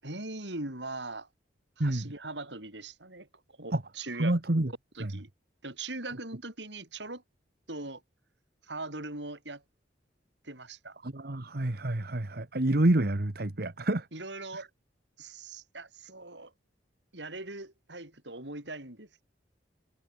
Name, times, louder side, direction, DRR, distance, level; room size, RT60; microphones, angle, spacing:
voice 1, 0.0-1.3 1.8-3.3 3.6-4.4 4.9-5.3 5.6-7.2 7.7-8.0 8.6-9.6 10.4-11.0 14.1-14.7 15.2-16.5 17.1-19.2, right 2 dB, 75° right, 7.6 m, -40 dB
voice 2, 4.2-4.7 5.0-5.1 11.0-14.1 14.5-14.6, right 1 dB, 60° right, 1.4 m, -28 dB
head